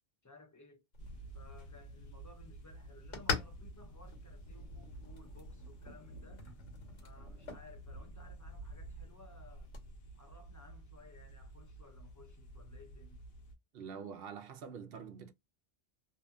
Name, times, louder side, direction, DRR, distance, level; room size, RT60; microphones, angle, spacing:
voice 1, 0.2-0.8 1.3-6.5 7.0-9.7 10.1-13.2, left 2 dB, 20° left, 0.5 m, -59 dB
sound 1, 0.9-9.9, left 4 dB, 80° left, 1.3 m, -45 dB
sound 2, 1.0-13.5, right 1 dB, 60° left, 1.0 m, -51 dB
voice 2, 13.7-15.3, right 6 dB, 60° right, 0.7 m, -46 dB
2.7 x 2.6 x 2.2 m
omnidirectional pair, 1.2 m